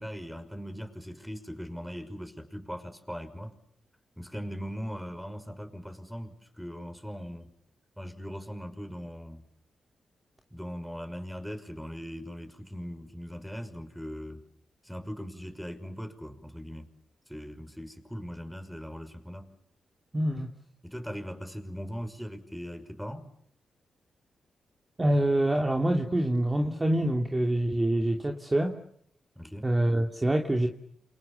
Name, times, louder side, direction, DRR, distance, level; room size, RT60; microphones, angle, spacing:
voice 1, 0.0-3.5 4.2-7.5 8.0-9.4 10.5-14.4 14.8-16.9 17.3-19.5 20.8-23.3 29.4-29.7, equal, ahead, 8 dB, 5.9 m, -40 dB
voice 2, 20.1-20.5 25.0-28.7 29.6-30.7, right 1 dB, 20° right, 3 dB, 2.8 m, -25 dB
29.5 x 28.5 x 7.0 m, 0.71 s
cardioid pair, 75°, 0 cm